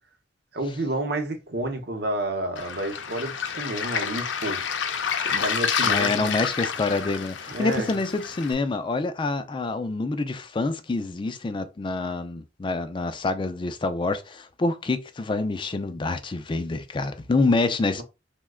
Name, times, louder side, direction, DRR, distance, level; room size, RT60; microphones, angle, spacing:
voice 1, 0.5-4.8 5.2-6.3 7.5-7.9, right 1 dB, 60° right, 0.8 m, -30 dB
Waves surf, 2.6-8.5, left 7 dB, 85° left, 0.5 m, -29 dB
voice 2, 5.8-18.0, left 3 dB, 25° left, 0.4 m, -27 dB
3.1 x 2.1 x 3.6 m
head